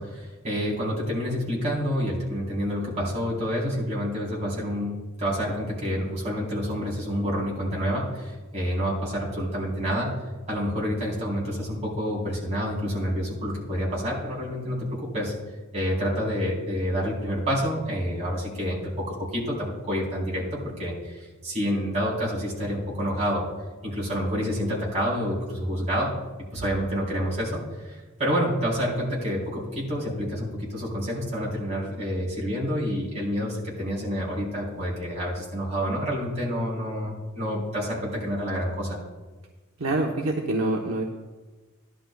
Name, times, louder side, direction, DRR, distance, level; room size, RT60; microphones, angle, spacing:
voice 1, 0.0-10.1 10.5-15.3 15.7-23.5 23.8-26.1 26.5-39.0, equal, 35° right, -6 dB, 3.8 m, -28 dB
voice 2, 39.8-41.0, right 2 dB, 75° right, 0 dB, 0.9 m, -25 dB
16.0 x 11.0 x 2.3 m, 1.2 s
head